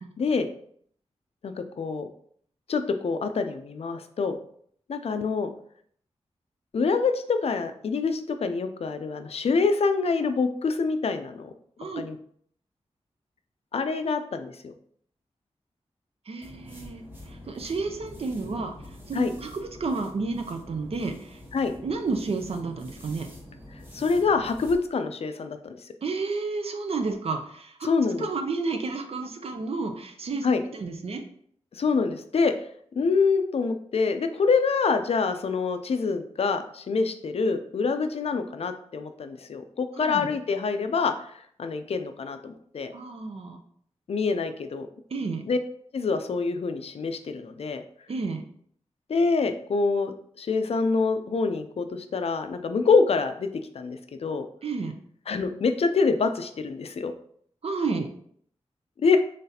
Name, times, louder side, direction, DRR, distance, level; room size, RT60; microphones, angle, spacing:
voice 1, 0.2-0.5 1.4-2.1 2.7-4.4 4.9-5.5 6.7-11.5 12.0-12.2 13.7-14.7 19.1-19.3 21.5-21.7 23.9-25.8 27.8-28.3 30.4-30.6 31.7-32.5 32.9-42.9 44.1-44.9 45.5-45.6 45.9-47.8 49.1-53.5 53.7-54.5 55.3-57.1 59.0-59.2, left 4 dB, 60° left, 8 dB, 0.4 m, -26 dB
voice 2, 16.3-18.7 19.1-21.4 21.8-23.3 26.0-27.9 28.2-30.5 30.7-31.2 39.9-40.3 42.9-43.6 45.1-45.4 48.1-48.4 54.6-55.0 57.6-58.1, right 4 dB, 60° right, 5 dB, 0.5 m, -31 dB
sound 1, 16.4-24.8, left 1 dB, 15° right, 1.0 m, -46 dB
3.9 x 3.3 x 2.7 m, 0.62 s
wide cardioid pair, 110°, 11 cm